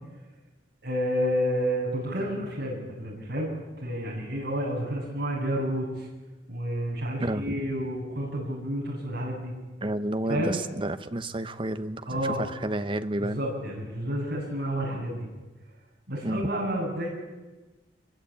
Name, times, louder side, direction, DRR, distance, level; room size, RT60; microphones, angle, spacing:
voice 1, 0.8-3.5 3.8-6.1 6.5-9.5 10.3-10.6 12.1-12.4 13.2-15.3 16.1-17.1, equal, 65° right, -3 dB, 7.4 m, -30 dB
voice 2, 7.2-7.6 9.8-13.4 16.2-16.4, right 1 dB, 30° right, 10 dB, 1.0 m, -30 dB
25.0 x 23.0 x 8.6 m, 1.2 s
head